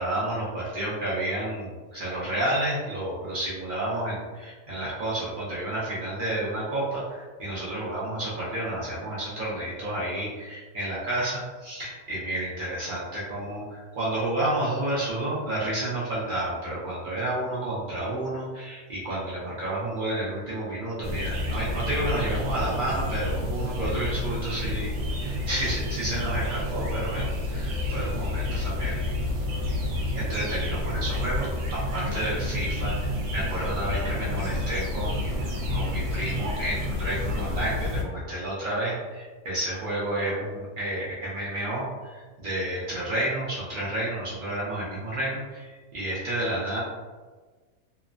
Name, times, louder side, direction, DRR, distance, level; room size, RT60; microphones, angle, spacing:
voice 1, 0.0-24.9 25.2-29.0 29.9-46.8, right 1 dB, 55° right, -7 dB, 0.6 m, -30 dB
sound 1, 21.0-38.0, left 1 dB, 75° right, 1.1 m, -29 dB
3.0 x 2.0 x 2.4 m, 1.4 s
omnidirectional pair, 1.6 m